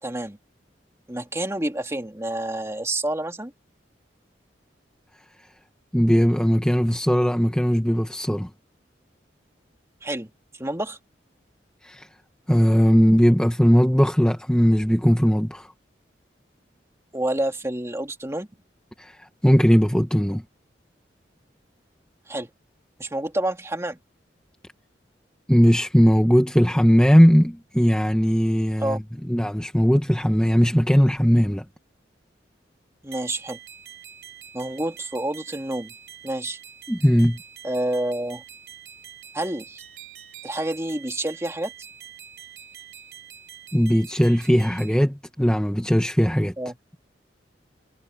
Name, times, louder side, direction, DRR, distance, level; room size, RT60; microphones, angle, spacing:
voice 1, 0.0-0.4 1.1-3.5 10.0-10.3 10.6-11.0 17.1-18.5 22.3-22.5 23.0-24.0 28.8-29.0 33.0-33.6 34.5-35.9 36.2-36.6 37.6-38.4 39.3-39.8 40.4-41.7 46.6-46.8, right 1 dB, 15° right, 2.3 m, -28 dB
voice 2, 5.9-8.5 11.8-12.1 12.5-15.7 19.0-20.4 25.5-29.0 29.3-31.6 36.9-37.4 43.7-46.5, equal, 5° left, 1.3 m, -19 dB
sound 1, 33.1-45.0, right 9 dB, 70° right, 5.8 m, -45 dB
head